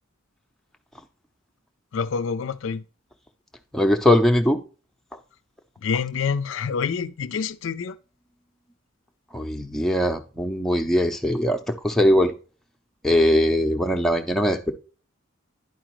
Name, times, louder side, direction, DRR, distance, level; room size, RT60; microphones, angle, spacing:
voice 1, 1.9-2.8 5.8-8.0, left 6 dB, 65° left, 0.4 m, -27 dB
voice 2, 3.7-4.6 9.3-12.3 13.0-14.7, left 1 dB, ahead, 0.6 m, -21 dB
10.5 x 5.0 x 3.0 m
head